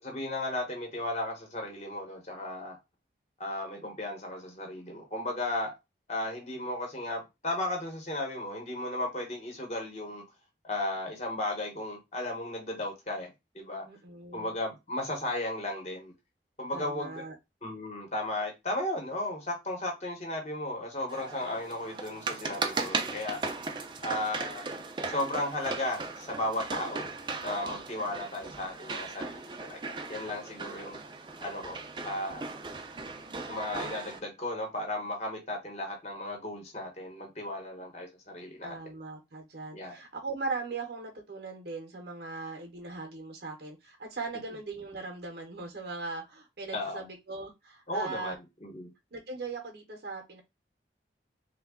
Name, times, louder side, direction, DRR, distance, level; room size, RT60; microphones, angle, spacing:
voice 1, 0.0-2.8 3.4-5.7 6.1-10.2 10.6-13.9 14.3-16.1 16.6-17.2 17.6-23.4 24.0-24.6 25.1-27.1 27.4-31.0 31.4-31.8 32.0-32.6 33.5-38.8 39.7-40.0 46.7-47.0 47.9-48.9, left 1 dB, 40° left, 1.0 m, -35 dB
voice 2, 13.8-14.6 16.7-17.3 38.6-48.3 49.1-50.4, right 3 dB, 60° right, 0.8 m, -39 dB
sound 1, 21.1-34.2, right 3 dB, 25° right, 0.5 m, -37 dB
3.2 x 2.2 x 3.6 m
head